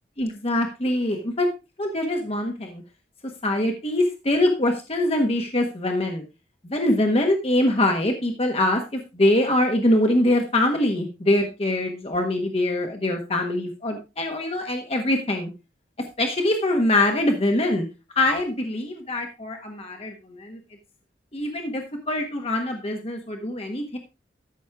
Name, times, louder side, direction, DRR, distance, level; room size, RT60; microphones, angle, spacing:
voice 1, 0.2-1.5 1.8-2.8 3.4-6.2 6.6-15.5 16.2-17.9 18.2-20.1 20.4-20.6 21.3-24.0, left 1 dB, 35° left, 3 dB, 1.3 m, -23 dB
13.5 x 6.3 x 3.5 m, 0.28 s
head